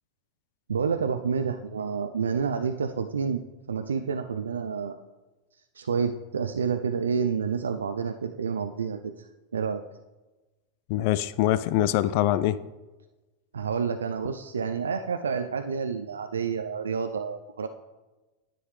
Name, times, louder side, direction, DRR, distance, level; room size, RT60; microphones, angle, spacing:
voice 1, 0.7-3.4 3.7-5.0 5.7-9.8 13.5-17.7, right 6 dB, 90° right, 7 dB, 0.4 m, -29 dB
voice 2, 10.9-12.6, left 13 dB, 60° left, 16 dB, 0.3 m, -24 dB
10.0 x 7.8 x 3.2 m, 1.1 s
hypercardioid pair, 95°, 0 cm